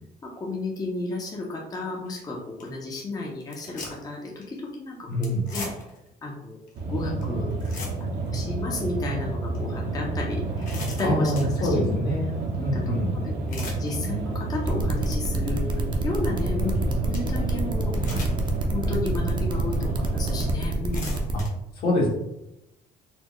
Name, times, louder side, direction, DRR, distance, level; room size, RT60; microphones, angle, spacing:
voice 1, 0.4-5.6 6.2-6.6 6.9-7.7 8.3-10.7 11.0-12.0 12.6-18.4 18.7-21.2, left 2 dB, 20° left, -2 dB, 0.6 m, -33 dB
sound 1, 2.1-2.2 2.6-2.7 3.4-4.1 4.4-4.6 5.2-6.1 6.7-6.8 7.2-7.3 7.5-8.3 8.8-8.9 9.5-9.6 10.2-11.5 13.2-13.9 14.3-14.7 15.2-15.3 16.7-16.8 17.1-17.2 17.9-18.6 19.1-19.2 20.0-20.1 20.7-21.5, left 3 dB, 50° left, 1.0 m, -38 dB
voice 2, 5.1-5.5 11.0-12.3 12.6-13.1 16.6-16.7 21.8-22.1, left 1 dB, 65° left, -4 dB, 1.4 m, -25 dB
sound 2, 6.8-20.5, right 2 dB, 70° right, 0.8 m, -29 dB
sound 3, 14.6-21.4, right 2 dB, 30° right, 0.5 m, -31 dB
4.2 x 2.0 x 3.0 m, 0.86 s
cardioid pair, 110°, 17 cm